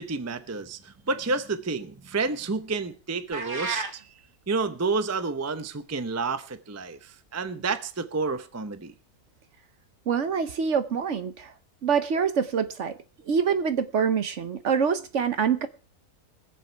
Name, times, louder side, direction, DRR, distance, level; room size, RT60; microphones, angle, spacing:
voice 1, 0.0-4.0 4.5-8.9, right 4 dB, 15° right, 0.5 m, -30 dB
sound 1, 3.3-4.0, right 4 dB, 35° right, 1.4 m, -31 dB
voice 2, 10.1-11.5 11.8-13.0 13.3-15.7, right 6 dB, 55° right, 1.1 m, -25 dB
22.0 x 7.4 x 4.5 m
omnidirectional pair, 1.6 m